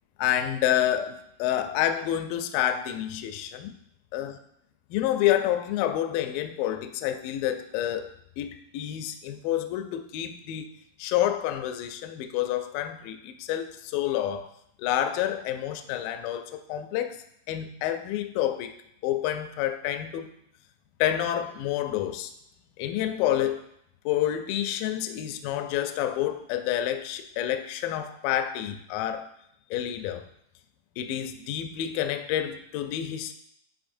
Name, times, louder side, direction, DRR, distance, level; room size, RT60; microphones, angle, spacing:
voice 1, 0.2-3.7 4.1-4.4 4.9-8.1 8.4-10.7 11.0-14.5 14.8-18.7 19.0-20.3 21.0-22.3 22.8-23.7 24.1-29.3 29.7-30.2 31.0-33.3, left 11 dB, 85° left, 8 dB, 2.0 m, -28 dB
10.5 x 3.9 x 2.6 m, 0.73 s
omnidirectional pair, 4.4 m